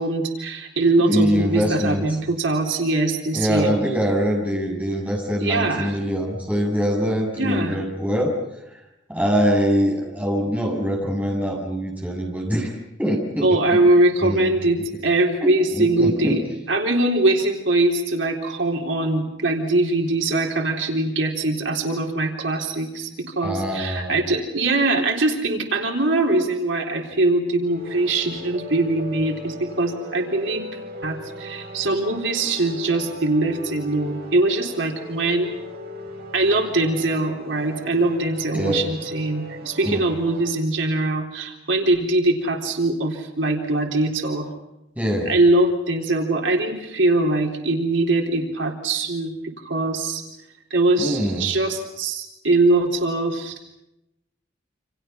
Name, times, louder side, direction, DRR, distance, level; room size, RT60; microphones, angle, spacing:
voice 1, 0.0-3.7 5.4-6.0 7.4-7.8 13.4-16.4 16.7-23.1 23.4-30.6 31.0-35.5 36.3-44.5 45.3-49.3 49.6-50.2 50.7-53.7, right 2 dB, 80° right, 2 dB, 3.8 m, -22 dB
voice 2, 1.0-2.0 3.3-8.3 9.1-12.7 13.0-13.8 14.2-14.5 15.4-16.4 23.4-24.1 38.5-38.8 39.8-40.0 45.0-45.3 51.0-51.5, equal, 10° right, -1 dB, 7.3 m, -23 dB
sound 1, 27.6-40.5, left 1 dB, 55° right, 7.5 m, -38 dB
29.0 x 27.5 x 5.7 m, 0.88 s
head